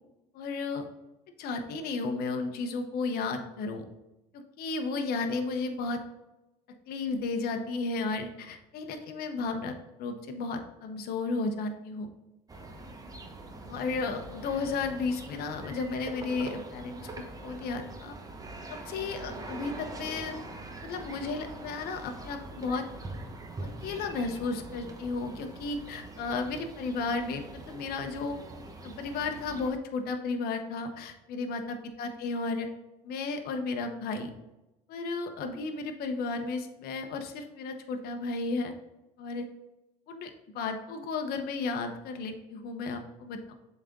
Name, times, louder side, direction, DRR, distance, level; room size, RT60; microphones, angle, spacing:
voice 1, 0.3-0.9 1.4-3.8 4.3-6.0 6.9-12.1 13.7-17.0 17.4-18.2 18.7-20.4 20.8-22.9 23.6-28.4 28.8-32.7 33.0-34.3 34.9-38.7 39.2-39.5 40.1-40.3 40.5-43.5, left 3 dB, 70° left, 5 dB, 1.0 m, -33 dB
sound 1, 12.5-29.7, right 2 dB, 20° right, 1.1 m, -43 dB
7.3 x 4.2 x 3.8 m, 0.97 s
supercardioid pair, 85°, 17 cm